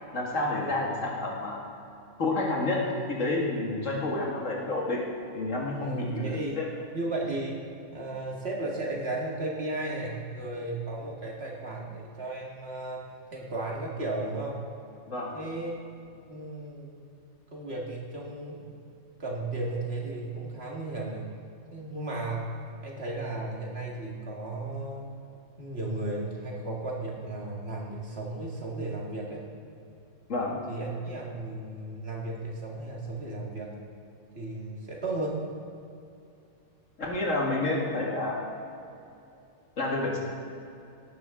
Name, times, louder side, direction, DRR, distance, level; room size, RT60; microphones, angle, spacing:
voice 1, 0.1-1.6 2.2-5.0 5.3-6.6 15.1-15.4 30.3-30.6 37.0-38.4 39.8-40.2, left 2 dB, 70° left, -3 dB, 2.5 m, -29 dB
voice 2, 5.8-6.6 6.9-7.6 7.9-13.0 13.3-14.6 15.3-15.8 16.3-16.9 17.5-18.7 19.2-21.2 21.7-22.5 22.8-25.1 25.6-29.4 30.7-33.7 34.3-35.4, right 2 dB, 50° right, -3 dB, 2.2 m, -34 dB
18.0 x 9.1 x 3.8 m, 2.6 s
omnidirectional pair, 1.4 m